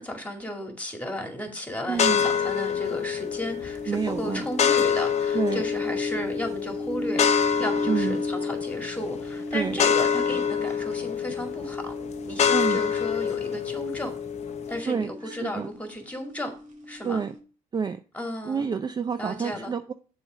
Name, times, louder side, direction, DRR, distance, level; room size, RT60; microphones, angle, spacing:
voice 1, 0.0-11.9 12.3-14.1 14.7-16.5 16.9-17.2 18.1-18.7 19.2-19.7, equal, 10° left, 2.1 m, -34 dB
sound 1, 1.9-14.8, left 7 dB, 45° left, 0.7 m, -27 dB
voice 2, 1.9-2.2 3.9-4.4 5.3-5.6 7.9-8.2 9.5-9.8 12.5-12.8 14.9-15.7 17.0-17.3 17.7-18.0 18.5-19.9, right 6 dB, 25° right, 0.4 m, -28 dB
sound 2, 3.2-13.5 13.8-15.8 16.3-17.4, left 1 dB, 50° right, 1.8 m, -35 dB
7.1 x 4.1 x 6.1 m
supercardioid pair, 80°, 15 cm